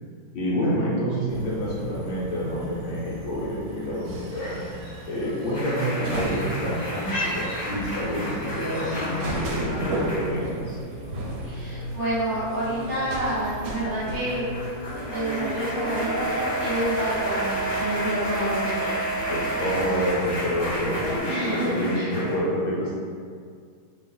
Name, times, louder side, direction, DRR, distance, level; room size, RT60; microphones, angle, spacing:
voice 1, 0.3-4.7 5.1-10.8 19.3-23.0, equal, 70° left, -6 dB, 1.4 m, -28 dB
sound 1, 1.3-21.2, right 3 dB, 75° right, 1.3 m, -34 dB
sound 2, 4.3-9.6, left 1 dB, 55° left, 0.9 m, -38 dB
sound 3, 5.5-22.4, left 1 dB, 15° left, 1.2 m, -32 dB
voice 2, 11.4-18.9 21.3-22.1, right 1 dB, 45° right, -12 dB, 1.2 m, -29 dB
3.0 x 2.9 x 3.6 m, 2.1 s
omnidirectional pair, 2.3 m